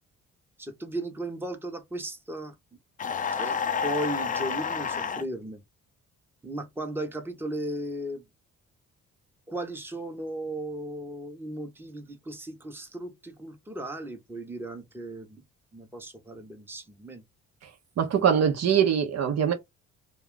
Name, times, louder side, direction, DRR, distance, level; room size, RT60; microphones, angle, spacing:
voice 1, 0.6-2.5 3.3-5.6 6.4-8.2 9.5-15.4 15.7-17.2, right 1 dB, 5° right, 0.8 m, -36 dB
sound 1, 3.0-5.2, left 6 dB, 25° left, 0.4 m, -29 dB
voice 2, 18.0-19.5, right 8 dB, 60° right, 0.7 m, -22 dB
2.4 x 2.3 x 3.6 m
cardioid pair, 90°, 30 cm